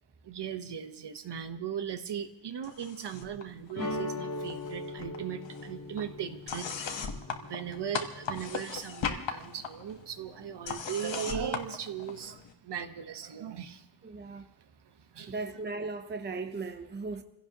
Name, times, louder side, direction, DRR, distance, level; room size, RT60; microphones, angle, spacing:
voice 1, 0.2-13.9 14.2-15.5, right 8 dB, 70° right, 1.2 m, -38 dB
sound 1, 2.6-3.4 3.7-4.7 5.0-12.5, left 6 dB, 90° left, 1.4 m, -39 dB
sound 2, 3.8-8.6, left 2 dB, 50° left, 1.6 m, -40 dB
voice 2, 14.0-14.5 15.3-17.2, right 3 dB, 25° right, 0.8 m, -37 dB
27.5 x 16.5 x 2.9 m
wide cardioid pair, 180°, 43 cm